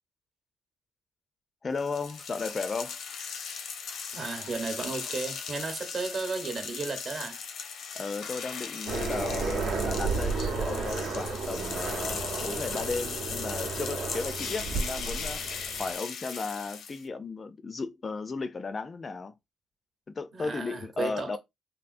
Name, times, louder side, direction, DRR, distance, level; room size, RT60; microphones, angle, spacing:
voice 1, 1.6-3.0 7.9-15.4 15.8-19.4 20.1-21.4, left 4 dB, 30° left, 0.3 m, -35 dB
sound 1, 1.8-17.0, left 6 dB, 80° left, 0.6 m, -38 dB
voice 2, 4.1-7.5 20.3-21.4, right 4 dB, 50° right, 0.9 m, -34 dB
Aircraft, 8.9-15.9, right 4 dB, 85° right, 0.8 m, -33 dB
3.5 x 2.5 x 2.5 m
cardioid pair, 115°, 0 cm